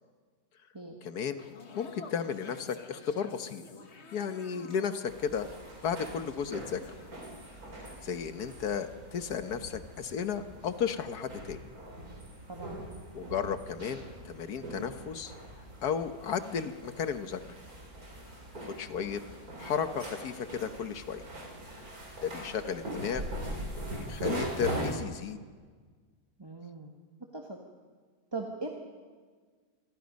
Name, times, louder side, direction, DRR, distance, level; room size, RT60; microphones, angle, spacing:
voice 1, 1.0-1.4 1.7-3.6 4.1-5.5 5.8-6.8 7.8-11.6 13.1-15.3 15.8-17.4 18.8-19.2 19.6-21.2 22.2-23.2 24.0-25.4, left 7 dB, 80° left, 9 dB, 1.7 m, -34 dB
sound 1, 1.2-7.5 7.8-8.0, left 5 dB, 45° left, 1.5 m, -51 dB
sound 2, 5.1-25.0, right 1 dB, 70° right, 4.0 m, -41 dB
voice 2, 12.5-12.8 26.4-26.9 27.3-27.6 28.3-28.7, right 3 dB, 15° right, 0 dB, 1.5 m, -39 dB
27.5 x 22.0 x 5.3 m, 1.5 s
omnidirectional pair, 1.6 m